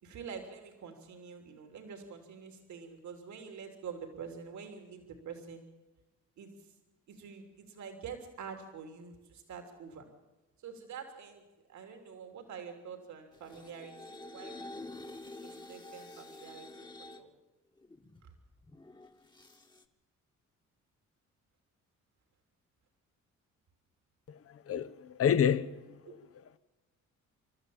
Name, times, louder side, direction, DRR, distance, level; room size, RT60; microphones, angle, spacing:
voice 1, 0.0-5.6 6.4-6.5 7.1-10.1 10.6-11.4 11.7-14.8 15.4-16.7 17.0-17.3 18.2-18.3 26.0-26.1, right 6 dB, 70° right, 3.3 m, -46 dB
sound 1, 13.3-17.2 17.8-19.8, left 2 dB, 15° left, 1.6 m, -48 dB
voice 2, 24.7-26.0, left 8 dB, 50° left, 1.0 m, -28 dB
29.0 x 13.0 x 8.7 m
cardioid pair, 90°, 30 cm